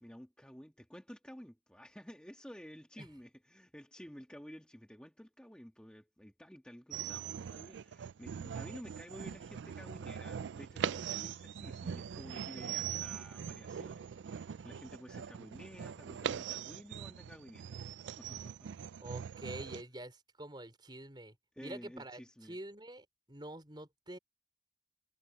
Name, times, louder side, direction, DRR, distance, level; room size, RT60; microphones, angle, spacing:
voice 1, 0.0-18.7 21.5-22.6, equal, 5° left, 1.6 m, -52 dB
sound 1, 6.9-19.8, right 8 dB, 90° right, 0.4 m, -41 dB
voice 2, 19.0-21.3 21.6-24.2, right 1 dB, 25° right, 4.6 m, -47 dB
head